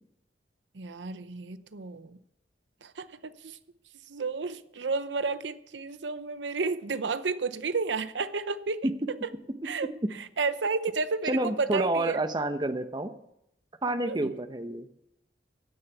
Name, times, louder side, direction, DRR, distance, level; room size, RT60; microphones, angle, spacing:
voice 1, 0.7-2.2 2.8-3.6 4.1-8.9 9.2-9.3 9.6-9.9 10.4-12.2 14.1-14.3, right 4 dB, 90° right, 0.7 m, -31 dB
voice 2, 11.3-13.1 13.8-14.9, right 1 dB, 25° right, 0.9 m, -28 dB
16.5 x 6.5 x 8.2 m
head